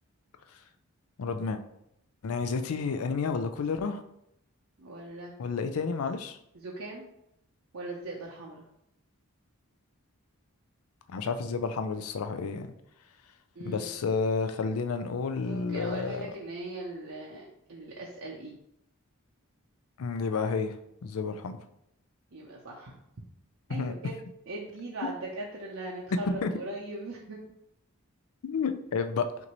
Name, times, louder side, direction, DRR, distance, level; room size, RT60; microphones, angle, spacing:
voice 1, 1.2-1.6 2.2-4.0 5.4-6.4 11.1-12.7 13.7-16.3 20.0-20.7 21.0-21.6 23.7-23.9 25.0-25.1 26.4-26.5 28.4-29.3, left 5 dB, 80° left, 9 dB, 0.4 m, -30 dB
voice 2, 4.8-5.3 6.5-7.0 7.7-8.6 13.6-13.9 15.4-18.6 22.3-23.0 23.7-24.2 24.5-27.4, right 2 dB, 65° right, -3 dB, 0.6 m, -40 dB
5.9 x 2.6 x 3.0 m, 0.79 s
head